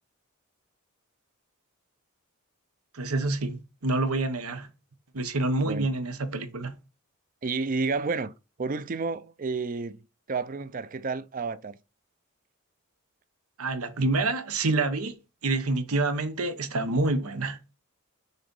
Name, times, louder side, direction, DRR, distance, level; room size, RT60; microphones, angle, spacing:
voice 1, 2.9-4.7 5.1-6.7 13.6-15.2 15.4-17.6, right 2 dB, 90° right, 1.1 m, -27 dB
voice 2, 7.4-8.3 8.6-10.0 10.3-11.8, right 4 dB, 40° right, 0.5 m, -30 dB
6.5 x 3.9 x 5.3 m
head